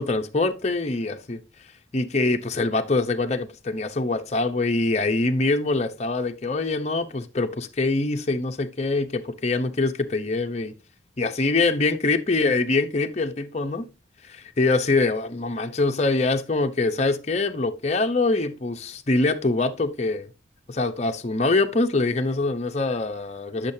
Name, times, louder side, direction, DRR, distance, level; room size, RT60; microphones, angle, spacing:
voice 1, 0.0-1.4 1.9-10.7 11.2-13.9 14.2-20.3 20.7-23.7, left 3 dB, 35° left, 0.7 m, -24 dB
10.0 x 6.5 x 2.7 m
head